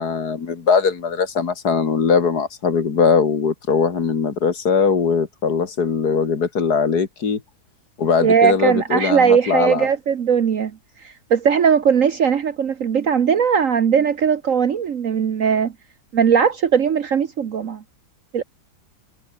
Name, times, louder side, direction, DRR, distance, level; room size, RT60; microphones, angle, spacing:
voice 1, 0.0-7.4 8.0-9.9, left 5 dB, 85° left, 2.7 m, -20 dB
voice 2, 8.2-10.7 11.0-15.7 16.1-17.8 18.3-18.4, right 7 dB, 60° right, 1.4 m, -18 dB
omnidirectional pair, 1.6 m